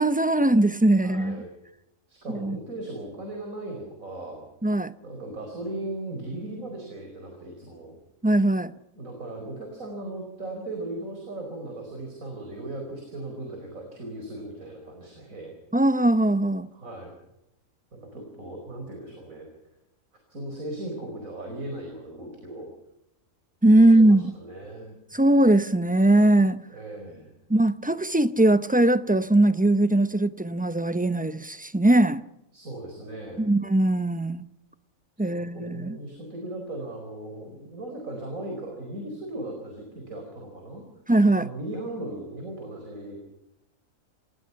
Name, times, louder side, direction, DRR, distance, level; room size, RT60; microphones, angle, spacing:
voice 1, 0.0-1.4 2.4-2.6 4.6-4.9 8.2-8.7 15.7-16.7 23.6-24.3 25.1-26.6 27.5-32.2 33.4-34.4 35.2-36.0 41.1-41.5, right 1 dB, 10° right, 0.4 m, -20 dB
voice 2, 1.0-1.5 2.1-4.4 5.0-7.9 8.9-15.5 16.7-17.1 17.9-19.5 20.3-22.7 23.8-24.9 26.7-27.3 32.5-33.4 35.3-40.8 41.3-43.1, right 1 dB, 75° right, 5.2 m, -37 dB
28.0 x 18.5 x 5.8 m
omnidirectional pair, 1.4 m